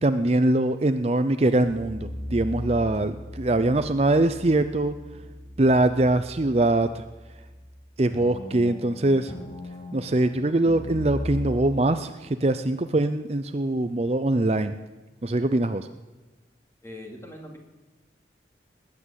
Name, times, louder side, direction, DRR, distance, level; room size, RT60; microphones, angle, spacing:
voice 1, 0.0-4.9 5.6-7.0 8.0-9.3 9.9-14.8 15.2-15.9, right 2 dB, 35° right, 9 dB, 0.6 m, -23 dB
sound 1, 1.6-7.8 8.1-11.6, equal, 40° left, 3.5 m, -38 dB
voice 2, 16.8-17.6, left 1 dB, 15° left, 2 dB, 2.6 m, -41 dB
20.0 x 8.6 x 8.3 m, 1.2 s
head